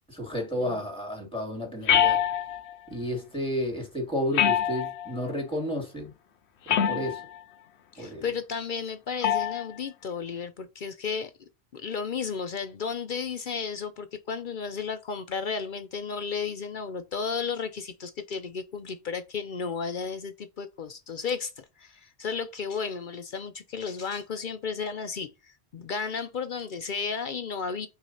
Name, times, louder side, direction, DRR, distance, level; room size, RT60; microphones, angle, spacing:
voice 1, 0.1-2.2 2.9-6.1 6.7-7.3 8.0-8.2, equal, 5° left, 2.7 m, -32 dB
sound 1, 1.9-2.7 4.3-5.2 6.7-7.4 9.2-9.6, left 9 dB, 90° left, 1.0 m, -24 dB
voice 2, 7.9-11.3 11.7-27.9, left 5 dB, 55° left, 0.7 m, -33 dB
6.0 x 3.8 x 5.6 m
omnidirectional pair, 1.1 m